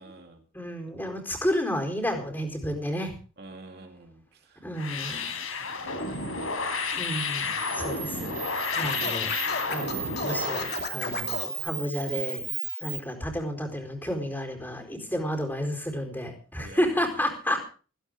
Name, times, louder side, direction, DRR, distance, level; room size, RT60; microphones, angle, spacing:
voice 1, 0.0-0.4 1.0-1.1 3.4-4.6 4.9-6.2 6.5-6.7 8.8-9.2 16.6-17.0, right 2 dB, 50° right, 3 dB, 2.6 m, -48 dB
voice 2, 0.5-3.2 4.6-5.3 6.9-8.3 8.7-9.4 9.7-12.4 12.8-17.6, equal, 10° left, 3 dB, 4.3 m, -31 dB
sound 1, 4.8-10.8, left 4 dB, 90° left, 4.9 m, -31 dB
Camera, 6.0-13.0, right 8 dB, 20° right, 4.6 m, -36 dB
Scratching (performance technique), 8.7-11.5, left 4 dB, 50° left, 2.7 m, -33 dB
17.0 x 16.5 x 3.7 m, 0.38 s
head